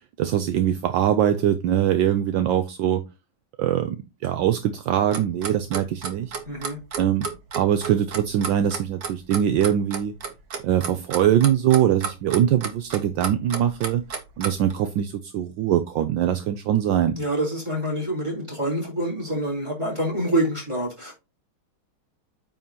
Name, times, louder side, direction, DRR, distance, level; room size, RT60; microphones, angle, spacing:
voice 1, 0.2-3.0 3.6-6.3 7.0-7.3 7.5-10.1 10.6-14.0 14.4-17.2, right 10 dB, 75° right, 1.3 m, -22 dB
Clock, 5.1-14.7, right 6 dB, 50° right, 1.6 m, -32 dB
voice 2, 6.4-6.8 17.1-21.1, right 1 dB, 15° right, 4.0 m, -26 dB
8.9 x 5.7 x 2.9 m
omnidirectional pair, 2.2 m